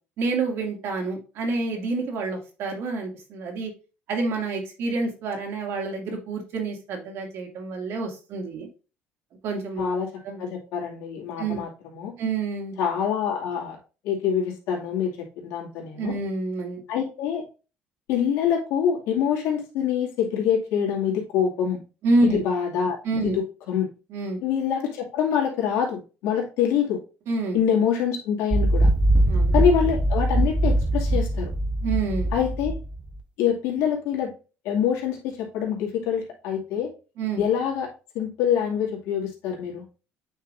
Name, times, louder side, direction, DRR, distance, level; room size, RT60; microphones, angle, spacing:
voice 1, 0.2-3.7 4.1-8.7 9.4-9.9 10.2-10.4 11.4-11.6 12.2-12.7 16.0-16.8 22.0-22.4 23.0-23.4 24.1-24.4 27.3-27.6 29.3-29.6 31.8-32.3 37.2-37.4, right 3 dB, 65° right, 1 dB, 2.3 m, -27 dB
voice 2, 9.8-10.1 10.4-12.1 12.8-13.8 14.0-16.1 16.9-17.4 18.1-21.8 22.2-23.0 23.2-23.9 24.4-27.0 27.5-28.9 29.5-31.5 32.3-32.8 33.4-34.3 34.6-36.9 37.4-37.9 38.1-39.8, left 8 dB, 85° left, -2 dB, 2.3 m, -25 dB
sound 1, 28.5-33.2, right 1 dB, 25° right, 0.9 m, -22 dB
8.8 x 4.7 x 2.6 m, 0.34 s
cardioid pair, 105°, 5 cm